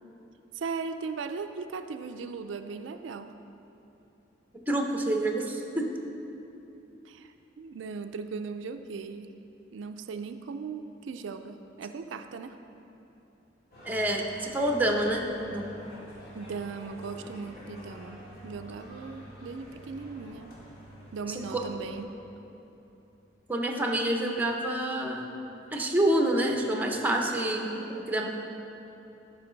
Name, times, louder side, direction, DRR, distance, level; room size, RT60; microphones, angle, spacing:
voice 1, 0.5-3.4 7.0-9.3 9.7-12.6 16.3-20.6 21.1-22.1, right 5 dB, 75° right, 8 dB, 0.4 m, -38 dB
voice 2, 4.7-5.9 13.8-15.7 21.3-21.7 23.5-25.3 25.7-28.3, right 1 dB, 10° right, 1 dB, 0.7 m, -27 dB
sound 1, 13.7-22.0, equal, 55° left, 2.1 m, -48 dB
13.0 x 5.6 x 3.9 m, 3.0 s
head